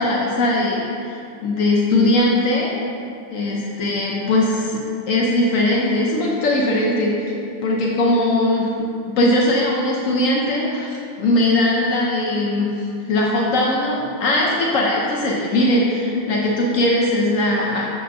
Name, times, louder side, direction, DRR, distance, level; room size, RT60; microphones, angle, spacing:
voice 1, 0.0-2.7 3.3-4.8 5.1-7.2 7.6-8.7 9.1-17.9, left 1 dB, 75° left, -3 dB, 1.1 m, -20 dB
7.6 x 6.5 x 2.6 m, 2.6 s
omnidirectional pair, 1.4 m